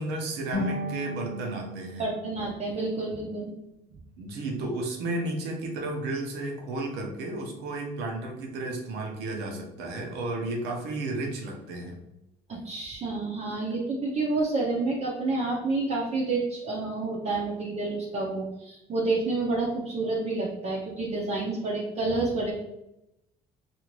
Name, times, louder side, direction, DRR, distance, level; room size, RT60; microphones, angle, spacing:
voice 1, 0.0-2.1 4.2-12.0, right 2 dB, 80° right, 1 dB, 0.8 m, -33 dB
sound 1, 0.5-3.6, left 1 dB, 80° left, 0.8 m, -36 dB
voice 2, 2.0-3.5 12.5-22.5, right 3 dB, 40° right, -4 dB, 0.6 m, -29 dB
2.6 x 2.4 x 3.0 m, 0.87 s
cardioid pair, 95°, 17 cm